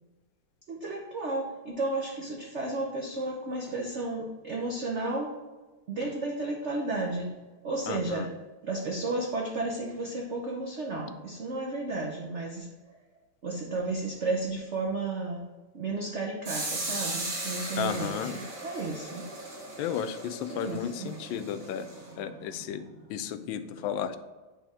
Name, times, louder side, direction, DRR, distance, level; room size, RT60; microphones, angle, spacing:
voice 1, 0.7-5.4 5.9-7.4 7.6-8.3 8.6-12.7 13.4-15.5 15.7-19.3 20.5-22.8, right 2 dB, 90° right, -1 dB, 0.6 m, -33 dB
voice 2, 7.9-8.3 17.8-18.3 19.8-21.9 22.2-24.2, left 9 dB, 75° left, 11 dB, 1.3 m, -33 dB
sound 1, 16.4-22.1, right 2 dB, 40° right, 2.0 m, -37 dB
8.3 x 3.4 x 4.9 m, 1.2 s
omnidirectional pair, 2.3 m